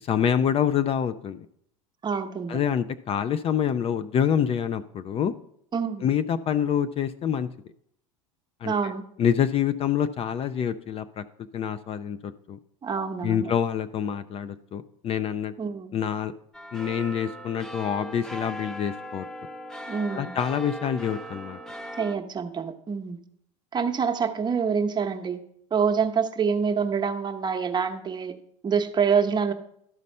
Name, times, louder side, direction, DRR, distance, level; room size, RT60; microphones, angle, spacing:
voice 1, 0.0-1.4 2.5-5.3 6.0-7.5 8.6-8.9 9.2-11.2 11.5-12.6 13.2-15.5 15.9-16.3 16.7-19.3 20.1-21.6, left 8 dB, 35° left, 12 dB, 0.4 m, -26 dB
voice 2, 2.0-2.6 5.7-6.1 8.6-9.0 12.8-13.5 15.6-15.9 19.9-20.3 22.0-23.2 23.7-25.4 25.7-28.4 28.6-29.5, right 6 dB, 25° right, 6 dB, 0.9 m, -26 dB
sound 1, 16.5-22.2, equal, 5° left, 0.7 m, -39 dB
12.0 x 4.1 x 5.4 m, 0.70 s
hypercardioid pair, 90°, 17 cm